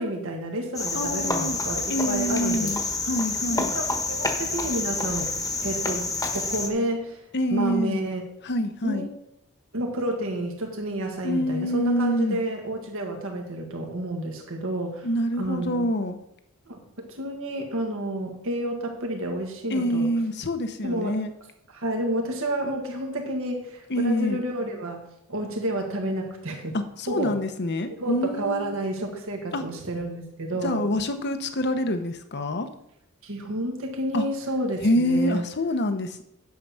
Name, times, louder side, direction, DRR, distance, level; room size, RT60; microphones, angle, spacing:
voice 1, 0.0-2.7 3.5-5.3 5.6-6.0 6.3-7.2 7.5-8.2 8.8-9.1 9.7-15.1 15.4-15.9 16.7-20.1 20.8-21.2 21.7-25.0 25.3-26.8 27.1-27.4 28.0-30.9 33.2-35.4, right 1 dB, 65° right, 2 dB, 1.7 m, -30 dB
Cricket, 0.8-6.7, left 3 dB, 15° left, 1.3 m, -28 dB
voice 2, 0.9-1.6 1.9-3.7 7.3-8.0 8.4-9.1 11.2-12.4 15.0-16.2 19.7-21.3 23.9-24.4 26.7-28.7 29.5-29.6 30.6-32.7 34.1-34.2 34.8-36.2, equal, 50° left, 8 dB, 1.0 m, -26 dB
9.6 x 7.5 x 5.6 m, 0.79 s
head